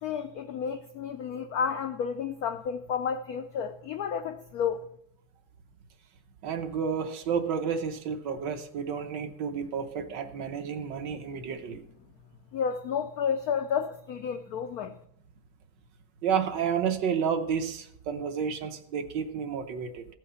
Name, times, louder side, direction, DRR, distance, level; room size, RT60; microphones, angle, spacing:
voice 1, 0.0-4.9 12.5-15.0, left 7 dB, 85° left, 0.8 m, -31 dB
voice 2, 6.4-11.8 16.2-20.1, right 7 dB, 65° right, 1.4 m, -31 dB
15.5 x 5.6 x 5.6 m
omnidirectional pair, 2.2 m